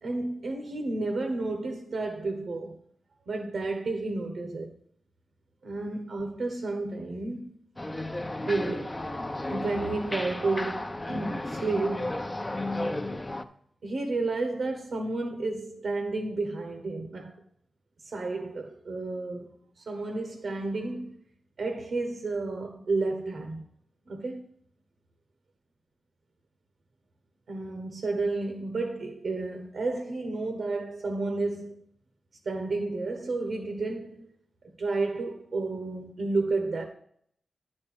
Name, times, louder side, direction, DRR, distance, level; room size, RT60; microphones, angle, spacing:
voice 1, 0.0-2.7 3.3-4.7 5.6-7.6 8.5-9.0 9.5-12.3 13.8-17.4 18.0-21.2 21.6-23.6 24.1-24.4 27.5-31.8 32.4-34.3 34.8-36.8, right 3 dB, 75° right, 1.1 m, -31 dB
sound 1, 7.8-13.4, left 1 dB, 20° left, 0.6 m, -33 dB
9.8 x 4.4 x 6.0 m
cardioid pair, 70°, 0 cm